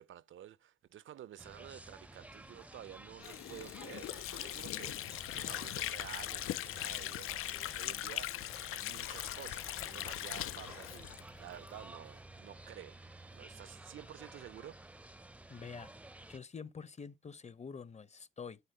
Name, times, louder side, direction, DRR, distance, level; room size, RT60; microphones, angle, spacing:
voice 1, 0.0-13.0 13.3-14.8, right 11 dB, 70° right, 0.6 m, -51 dB
sound 1, 1.4-16.4, right 1 dB, 5° right, 0.5 m, -53 dB
Water / Sink (filling or washing), 3.2-11.8, left 14 dB, 85° left, 0.4 m, -40 dB
voice 2, 15.5-15.9 16.3-18.6, left 5 dB, 30° left, 0.8 m, -47 dB
11.0 x 3.9 x 6.6 m
cardioid pair, 90°, 21 cm